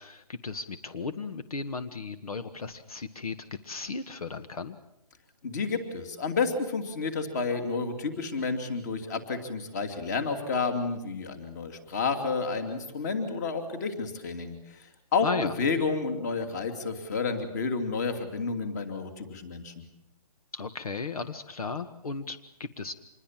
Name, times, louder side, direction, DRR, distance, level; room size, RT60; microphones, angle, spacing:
voice 1, 0.0-3.4 3.6-4.8 15.2-15.5 20.5-22.9, left 4 dB, 70° left, 10 dB, 1.6 m, -35 dB
voice 2, 5.4-19.8, left 4 dB, 30° left, 7 dB, 2.9 m, -30 dB
26.5 x 21.5 x 7.6 m, 0.83 s
hypercardioid pair, 170°, 19 cm